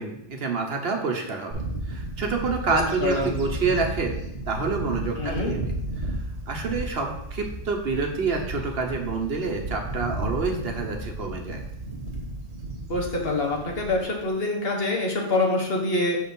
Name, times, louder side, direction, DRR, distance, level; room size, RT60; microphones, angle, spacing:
voice 1, 0.0-1.5 1.9-4.2 4.5-5.6 6.0-6.2 6.5-11.6, right 4 dB, 60° right, 2 dB, 1.2 m, -28 dB
Bird / Wind, 1.5-14.3, right 1 dB, 75° right, 1.5 m, -33 dB
voice 2, 2.7-3.3 5.2-5.5 12.9-16.2, left 2 dB, 60° left, 0 dB, 1.5 m, -25 dB
6.8 x 4.3 x 5.3 m, 0.80 s
omnidirectional pair, 1.2 m